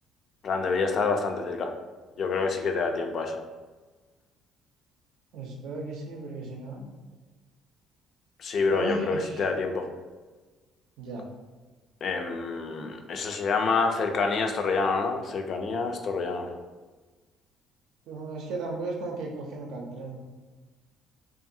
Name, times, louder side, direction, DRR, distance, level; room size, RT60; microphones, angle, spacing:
voice 1, 0.4-1.7 2.2-3.4 8.4-9.9 12.0-16.5, left 4 dB, 50° left, 5 dB, 0.3 m, -27 dB
voice 2, 5.3-6.9 8.7-9.5 11.0-11.3 18.1-20.2, right 3 dB, 75° right, 0 dB, 0.5 m, -35 dB
2.6 x 2.4 x 2.6 m, 1.3 s
cardioid pair, 115°, 0 cm